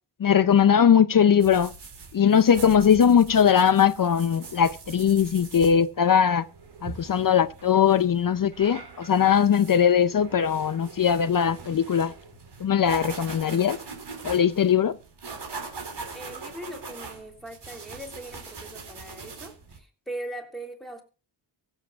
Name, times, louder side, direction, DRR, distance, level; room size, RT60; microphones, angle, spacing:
voice 1, 0.2-1.7 2.1-6.4 6.8-12.1 12.6-13.8 14.2-14.9, left 8 dB, 50° left, 0.6 m, -20 dB
sound 1, 1.4-19.8, right 4 dB, 60° right, 4.2 m, -42 dB
voice 2, 16.1-21.0, right 1 dB, ahead, 3.2 m, -40 dB
23.0 x 8.1 x 2.4 m
wide cardioid pair, 180°, 45 cm